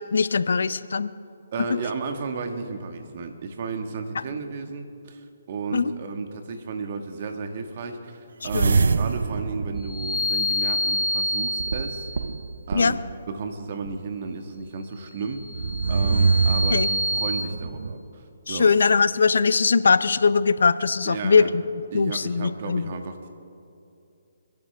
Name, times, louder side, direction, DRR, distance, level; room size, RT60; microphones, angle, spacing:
voice 1, 0.1-1.1 5.7-5.9 8.4-8.8 12.7-12.9 16.7-16.9 18.5-21.6 21.9-22.9, left 5 dB, 75° left, 15 dB, 0.5 m, -21 dB
voice 2, 1.5-12.1 12.7-13.0 13.3-18.7 21.0-21.5 21.9-23.3, right 4 dB, 50° right, 6 dB, 1.6 m, -33 dB
sound 1, 8.4-10.9 11.6-13.2 13.9-14.0 15.4-17.9, right 4 dB, 75° right, 0.5 m, -25 dB
sound 2, 9.8-12.4 15.3-17.4, left 1 dB, 10° right, 1.5 m, -27 dB
28.5 x 10.5 x 3.4 m, 2.6 s
hypercardioid pair, 145°, 0 cm